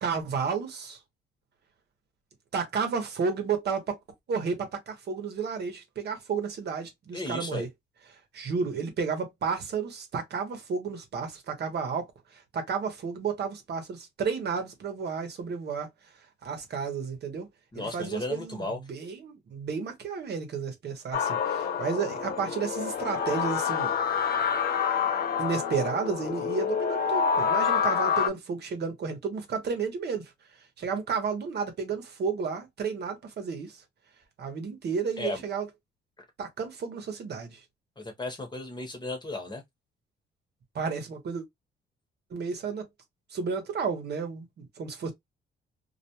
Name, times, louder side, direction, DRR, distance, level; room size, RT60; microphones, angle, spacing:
voice 1, 0.0-1.0 2.5-4.0 4.3-7.7 8.3-15.9 16.4-17.5 17.8-23.9 25.4-30.3 30.8-33.8 34.4-35.7 36.4-37.6 40.7-41.4 42.3-42.9 43.3-45.1, right 5 dB, 55° right, 0.9 m, -32 dB
voice 2, 7.1-7.7 17.7-18.8 35.2-35.4 38.0-39.6, left 2 dB, 20° left, 1.0 m, -35 dB
sound 1, 21.1-28.3, left 6 dB, 50° left, 0.5 m, -27 dB
2.3 x 2.1 x 2.8 m
cardioid pair, 90°, 20 cm